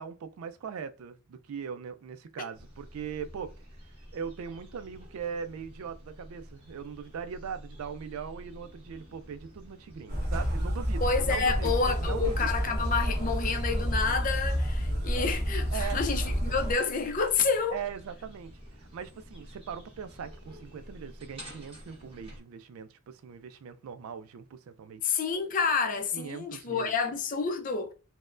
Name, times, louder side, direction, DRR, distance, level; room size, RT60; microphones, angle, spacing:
voice 1, 0.0-3.5 4.1-11.7 12.0-12.5 15.7-16.0 17.7-25.0 26.1-26.9, right 7 dB, 80° right, 0.3 m, -40 dB
sound 1, 2.5-22.4, equal, 25° right, 1.3 m, -49 dB
sound 2, 10.1-16.7, equal, 45° right, 1.3 m, -29 dB
voice 2, 11.0-17.8 25.0-27.9, left 5 dB, 40° left, 0.5 m, -29 dB
sound 3, 11.6-17.5 18.6-18.7, right 1 dB, 5° left, 1.7 m, -53 dB
4.2 x 2.1 x 2.4 m
head